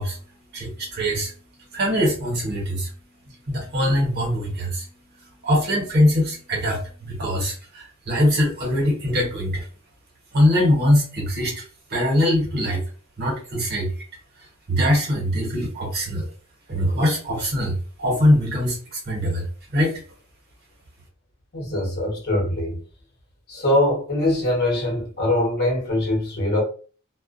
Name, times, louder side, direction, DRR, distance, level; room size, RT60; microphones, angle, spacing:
voice 1, 0.0-9.6 10.3-11.6 11.9-12.8 13.2-13.9 14.7-16.3 16.7-19.5 19.7-20.0, equal, 45° right, 1.0 m, -22 dB
voice 2, 21.5-22.8 23.5-26.6, left 1 dB, 45° left, 0.9 m, -22 dB
2.3 x 2.2 x 2.4 m
head